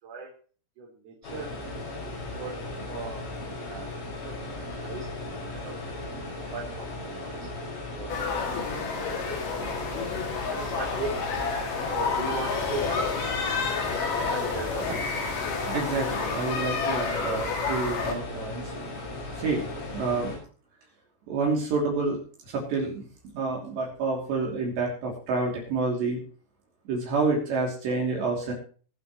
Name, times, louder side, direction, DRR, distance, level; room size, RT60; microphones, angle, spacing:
voice 1, 0.0-0.3 0.8-1.6 2.0-3.9 4.2-5.8 6.3-7.6 7.9-8.7 9.0-9.7 10.4-11.2 11.9-13.2 14.1-15.0, right 3 dB, 40° right, -3 dB, 4.7 m, -39 dB
sound 1, 1.2-20.4, left 2 dB, 80° left, 8.6 m, -37 dB
sound 2, 8.1-18.1, left 5 dB, 50° left, 3.6 m, -30 dB
voice 2, 15.6-18.7 19.4-19.6 19.9-20.4 21.3-23.0 23.3-26.2 26.9-28.5, right 3 dB, 60° right, -1 dB, 4.9 m, -28 dB
24.0 x 8.3 x 3.1 m, 0.41 s
omnidirectional pair, 5.7 m